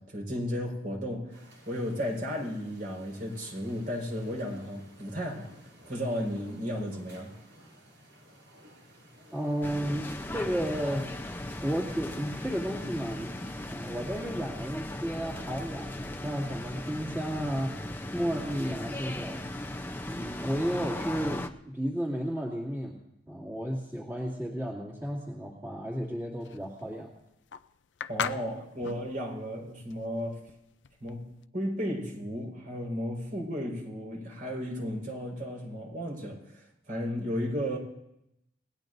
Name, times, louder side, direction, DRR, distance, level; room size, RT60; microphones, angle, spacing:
voice 1, 0.0-5.5 5.9-7.3 28.1-30.4 31.0-37.8, equal, 50° right, -1 dB, 5.0 m, -34 dB
sound 1, 1.3-14.4, right 1 dB, 70° right, 6.7 m, -55 dB
voice 2, 9.3-11.1 11.6-13.4 13.7-17.8 18.1-19.4 20.0-22.9 23.3-27.1, equal, 15° right, -5 dB, 2.5 m, -33 dB
sound 2, 9.6-21.5, left 1 dB, 10° left, 0.7 m, -38 dB
sound 3, 26.4-31.4, left 7 dB, 85° left, 0.5 m, -38 dB
30.0 x 17.5 x 2.7 m, 0.84 s
head